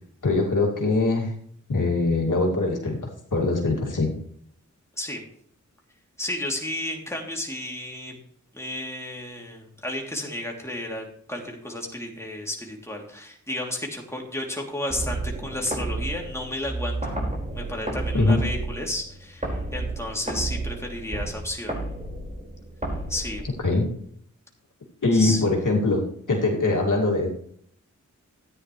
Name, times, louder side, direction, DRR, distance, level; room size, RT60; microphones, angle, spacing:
voice 1, 0.2-1.3 1.7-3.0 3.3-4.1 18.1-18.4 23.6-24.0 25.0-27.3, left 2 dB, 70° left, -1 dB, 2.3 m, -22 dB
voice 2, 6.2-8.2 8.5-17.2 17.5-21.8 23.1-23.4 25.1-25.4, left 1 dB, 10° left, 0 dB, 2.9 m, -32 dB
sound 1, 14.9-23.9, right 2 dB, 25° right, 4.7 m, -32 dB
13.5 x 9.6 x 3.2 m, 0.63 s
cardioid pair, 45°, 32 cm